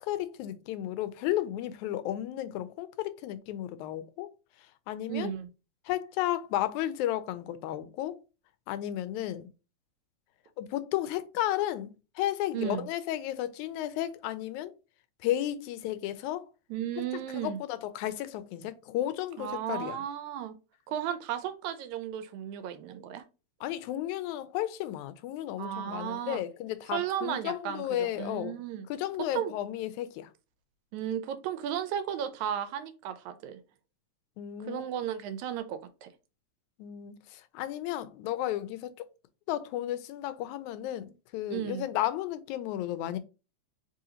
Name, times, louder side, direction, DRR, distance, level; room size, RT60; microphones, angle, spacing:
voice 1, 0.0-5.3 5.9-8.2 8.7-9.5 10.6-14.7 15.2-16.5 17.3-20.0 23.6-28.6 28.9-30.3 34.4-35.0 36.8-39.1 39.5-43.2, left 13 dB, 90° left, 2.0 m, -33 dB
voice 2, 5.1-5.5 12.5-12.9 16.7-17.6 19.4-20.6 20.9-23.2 25.6-26.4 26.9-28.8 29.3-29.5 30.9-33.6 34.7-36.1 41.5-41.8, right 10 dB, 85° right, 1.9 m, -34 dB
4.7 x 3.8 x 2.8 m
omnidirectional pair, 3.3 m